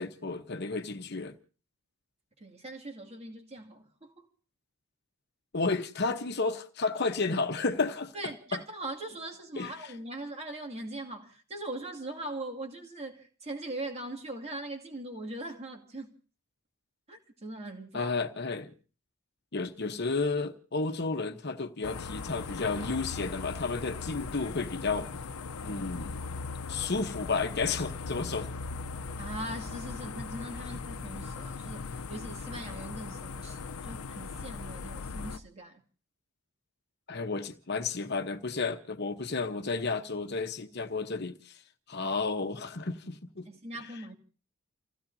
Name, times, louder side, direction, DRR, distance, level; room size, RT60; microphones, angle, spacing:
voice 1, 0.0-1.3 5.5-8.1 8.5-8.6 9.6-9.7 17.9-18.7 19.5-25.1 25.6-26.2 26.7-28.5 37.1-41.6 41.9-43.5, left 4 dB, 50° left, 1.0 m, -32 dB
voice 2, 2.4-4.3 8.1-16.1 17.1-18.1 29.2-35.8 43.5-44.1, right 1 dB, 30° right, 2.4 m, -41 dB
sound 1, 21.8-35.4, left 4 dB, 85° left, 0.7 m, -39 dB
30.0 x 16.0 x 2.7 m
head